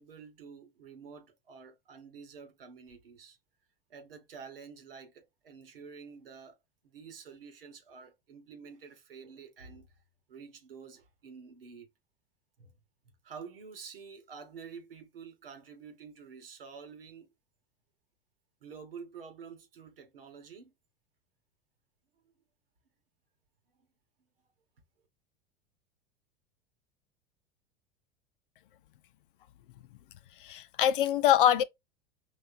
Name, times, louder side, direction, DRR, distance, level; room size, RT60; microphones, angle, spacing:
voice 1, 0.0-3.4 3.9-6.6 6.8-9.9 10.3-11.9 12.6-12.7 13.2-17.3 18.6-20.7, right 6 dB, 70° right, 1.4 m, -49 dB
voice 2, 30.4-31.6, left 10 dB, 60° left, 0.6 m, -24 dB
5.3 x 3.2 x 2.7 m
figure-of-eight pair, 85°, 29 cm